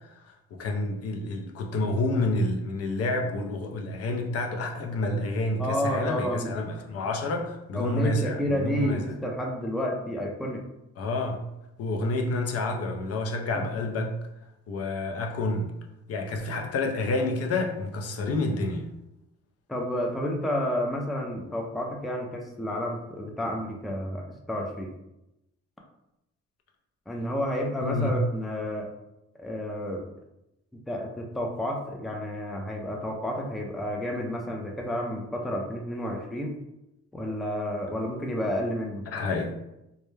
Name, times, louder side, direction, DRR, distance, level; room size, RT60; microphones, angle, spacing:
voice 1, 0.5-9.1 11.0-11.4 11.8-14.1 14.7-15.7 16.1-18.9 27.8-28.1 39.1-39.5, left 2 dB, 50° left, 3 dB, 0.5 m, -29 dB
voice 2, 5.6-6.5 7.7-10.6 13.5-13.6 18.3-18.5 19.7-24.2 24.5-24.9 27.1-28.9 29.4-30.0 30.9-36.6 37.1-39.0, equal, ahead, 1 dB, 0.3 m, -30 dB
2.2 x 2.1 x 3.1 m, 0.89 s
cardioid pair, 90°, 30 cm